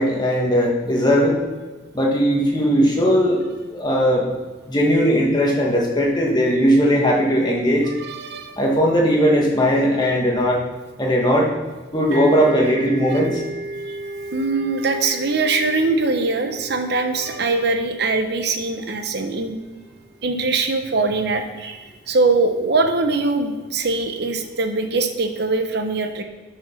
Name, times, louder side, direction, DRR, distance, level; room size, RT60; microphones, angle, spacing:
voice 1, 0.0-1.4 1.9-3.4 3.7-4.3 4.7-7.9 8.6-10.6 11.0-11.5 11.9-13.4, equal, 20° left, -1 dB, 1.5 m, -18 dB
voice 2, 8.0-8.6 13.1-13.2 13.9-14.0 14.3-19.6 20.2-26.2, right 3 dB, 55° right, 6 dB, 0.8 m, -22 dB
sound 1, 12.1-19.6, right 1 dB, 70° right, 3.2 m, -34 dB
9.5 x 5.1 x 6.4 m, 1.3 s
head